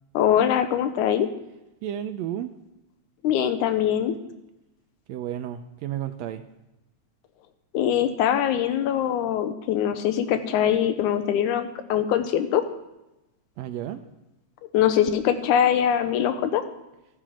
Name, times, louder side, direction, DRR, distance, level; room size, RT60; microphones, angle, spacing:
voice 1, 0.1-1.3 3.2-4.1 7.7-12.6 14.7-16.6, left 9 dB, 90° left, 9 dB, 2.2 m, -22 dB
voice 2, 1.8-2.6 5.1-6.4 13.6-14.0, right 11 dB, 80° right, 9 dB, 1.6 m, -32 dB
14.5 x 7.5 x 5.0 m, 0.97 s
omnidirectional pair, 3.4 m